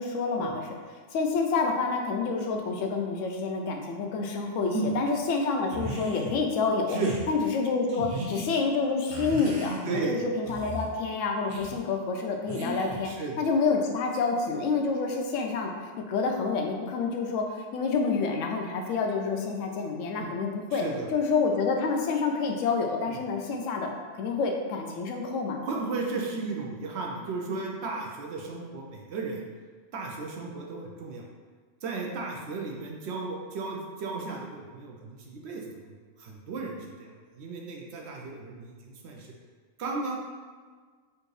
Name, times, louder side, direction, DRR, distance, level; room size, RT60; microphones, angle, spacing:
voice 1, 0.0-7.0 7.3-13.1 13.4-15.7 16.1-20.9 21.1-25.6, left 4 dB, 90° left, 2 dB, 0.9 m, -28 dB
sound 1, 5.7-6.4 6.9-7.2 7.9-8.5 9.1-10.1 10.4-10.9 11.5-11.8 12.5-13.1, right 1 dB, 50° right, 0.4 m, -35 dB
voice 2, 9.9-10.2 13.0-13.4 20.2-20.3 20.7-21.1 23.1-23.2 25.7-29.5 29.9-31.2 31.8-39.3 39.8-40.2, right 3 dB, 65° right, 0 dB, 0.8 m, -35 dB
4.4 x 2.5 x 3.1 m, 1.5 s
omnidirectional pair, 1.3 m